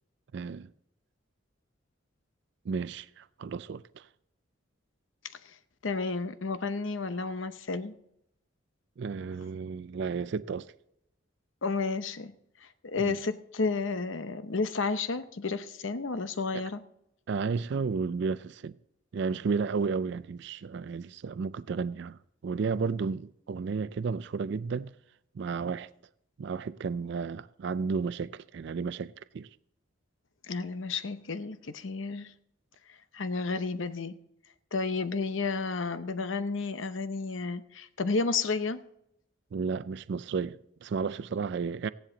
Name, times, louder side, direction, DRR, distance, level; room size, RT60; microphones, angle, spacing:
voice 1, 0.3-0.7 2.7-4.1 9.0-10.7 13.0-13.2 16.5-16.6 17.3-18.7 19.1-24.9 25.3-25.9 26.4-29.5 39.5-41.9, right 5 dB, 60° right, 0.4 m, -33 dB
voice 2, 5.8-7.9 11.6-12.3 12.8-16.8 30.5-32.3 33.1-34.1 34.7-38.8, left 4 dB, 75° left, 0.8 m, -31 dB
16.0 x 10.5 x 3.9 m
head